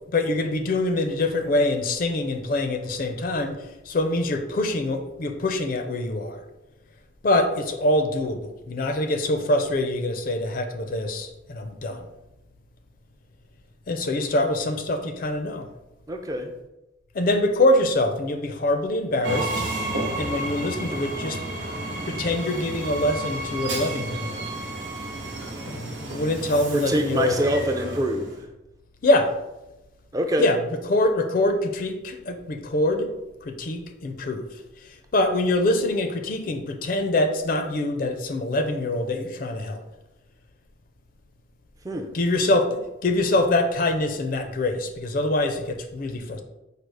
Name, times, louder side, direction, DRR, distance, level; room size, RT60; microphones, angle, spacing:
voice 1, 0.1-6.4 7.2-12.1 13.9-15.7 17.1-19.6 20.2-21.4 21.8-24.5 25.7-27.4 29.0-29.3 30.4-33.1 33.4-34.5 35.1-39.8 42.1-46.4, left 1 dB, 50° left, 7 dB, 0.4 m, -24 dB
voice 2, 16.1-16.5 26.7-28.3 30.1-30.5 41.8-42.1, right 1 dB, 20° right, 4 dB, 0.4 m, -25 dB
Train, 19.2-28.4, right 2 dB, 75° right, 0.9 m, -31 dB
4.9 x 2.3 x 4.6 m, 0.97 s
head